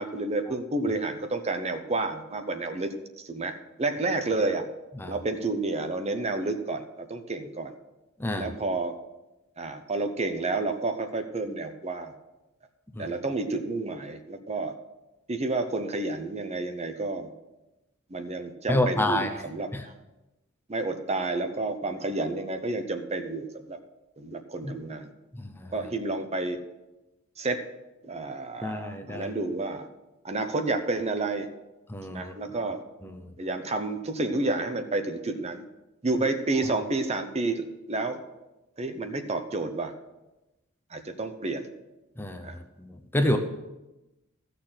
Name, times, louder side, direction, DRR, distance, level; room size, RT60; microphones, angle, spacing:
voice 1, 0.0-4.7 5.1-7.7 8.4-8.9 9.6-12.1 13.0-14.7 15.3-17.3 18.1-19.9 20.7-23.8 24.2-25.1 25.7-26.6 27.4-27.6 28.0-29.9 30.2-31.5 32.1-32.8 33.4-35.6 36.0-38.2 38.8-39.9 40.9-41.7 42.4-42.6, right 2 dB, 30° right, 8 dB, 0.8 m, -30 dB
voice 2, 18.7-19.3 19.7-19.8 24.6-24.7 25.3-25.7 28.6-29.3 31.9-32.3 33.0-33.3 42.2-42.5 42.8-43.4, left 1 dB, 10° left, 5 dB, 0.7 m, -28 dB
14.0 x 6.7 x 5.8 m, 1.0 s
head